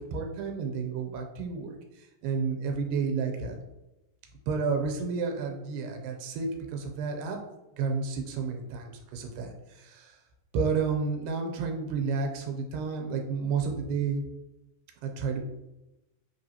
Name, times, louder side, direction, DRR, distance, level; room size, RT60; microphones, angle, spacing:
voice 1, 0.1-1.8 2.2-3.6 4.5-7.4 7.8-9.5 9.8-10.2 10.5-14.2 15.0-15.4, right 5 dB, 85° right, 2 dB, 2.3 m, -31 dB
4.6 x 3.4 x 2.8 m, 0.96 s
omnidirectional pair, 3.8 m